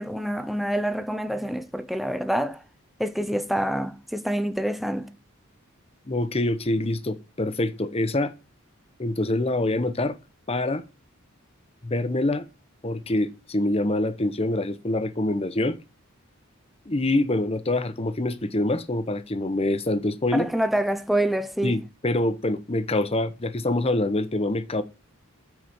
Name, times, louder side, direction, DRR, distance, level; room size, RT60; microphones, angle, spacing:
voice 1, 0.0-2.6 3.0-5.1 20.3-21.8, right 1 dB, ahead, 0.6 m, -26 dB
voice 2, 6.1-8.3 9.0-10.2 10.5-10.8 11.8-12.4 12.8-15.8 16.9-20.5 21.6-24.8, left 2 dB, 30° left, 0.9 m, -25 dB
7.8 x 5.0 x 7.5 m
head